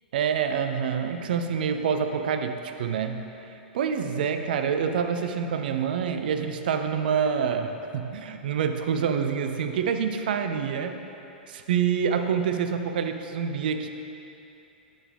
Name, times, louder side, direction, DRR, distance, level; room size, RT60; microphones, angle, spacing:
voice 1, 0.1-3.3 3.7-11.0 11.5-13.9, right 7 dB, 60° right, 7 dB, 0.6 m, -27 dB
10.0 x 9.1 x 3.4 m, 2.9 s
figure-of-eight pair, 95°, 5 cm